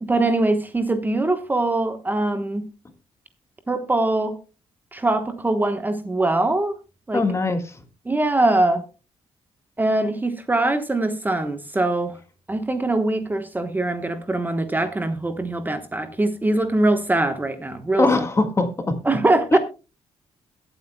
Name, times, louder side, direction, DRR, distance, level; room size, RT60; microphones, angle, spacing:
voice 1, 0.0-2.6 3.7-4.4 4.9-6.8 7.1-7.2 8.1-8.8 9.8-12.2 12.5-18.1 19.0-19.6, right 2 dB, 15° right, 8 dB, 1.1 m, -22 dB
voice 2, 7.1-7.8 17.9-19.0 19.5-19.6, left 3 dB, 25° left, 7 dB, 1.7 m, -21 dB
22.0 x 8.0 x 2.2 m, 0.31 s
cardioid pair, 110°, 11 cm